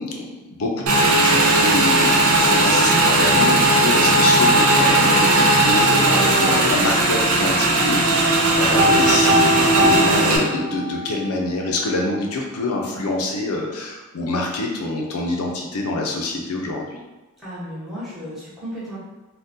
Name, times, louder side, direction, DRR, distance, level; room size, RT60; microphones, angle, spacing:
voice 1, 0.0-17.0, left 2 dB, 90° left, 0 dB, 0.5 m, -26 dB
Motorcycle / Engine, 0.9-10.4, right 2 dB, 85° right, 0.5 m, -17 dB
Piano, 8.8-11.1, left 1 dB, 35° left, 0.8 m, -21 dB
voice 2, 17.4-19.0, equal, ahead, -11 dB, 1.0 m, -34 dB
3.5 x 2.2 x 2.7 m, 1.1 s
head